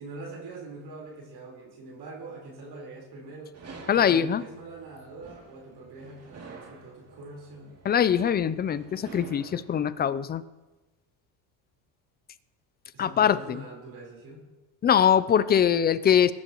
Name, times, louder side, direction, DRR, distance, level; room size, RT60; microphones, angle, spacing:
voice 1, 0.0-3.5 3.9-7.7 12.9-14.5, right 3 dB, 50° right, -3 dB, 4.2 m, -43 dB
sound 1, 3.5-9.9, right 4 dB, 30° right, 2.7 m, -49 dB
voice 2, 3.9-4.4 7.8-10.4 13.0-13.6 14.8-16.3, left 8 dB, 20° left, 15 dB, 0.4 m, -22 dB
21.0 x 11.0 x 3.0 m, 1.1 s
supercardioid pair, 110°, 49 cm